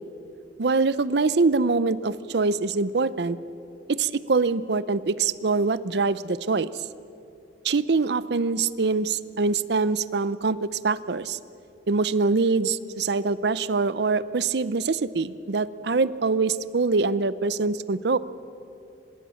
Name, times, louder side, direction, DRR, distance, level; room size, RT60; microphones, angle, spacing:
voice 1, 0.6-3.4 3.9-6.7 7.6-11.4 11.9-18.2, right 4 dB, 65° right, 17 dB, 0.6 m, -24 dB
25.0 x 21.5 x 7.1 m, 2.7 s
head